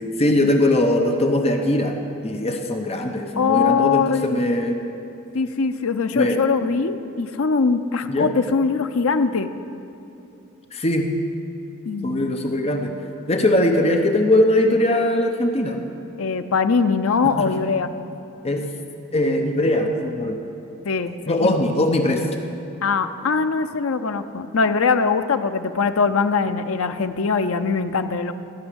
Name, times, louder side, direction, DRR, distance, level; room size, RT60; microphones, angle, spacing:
voice 1, 0.0-4.8 6.1-6.4 8.1-8.3 10.7-11.1 12.0-12.9 13.3-15.8 17.4-17.5 18.4-18.6 19.1-20.4 21.3-22.3, left 1 dB, 30° left, 3 dB, 0.8 m, -20 dB
voice 2, 3.4-4.4 5.3-9.5 11.8-12.5 16.2-17.9 20.8-21.5 22.8-28.3, left 5 dB, 70° left, 9 dB, 0.6 m, -22 dB
14.5 x 6.3 x 9.8 m, 2.8 s
head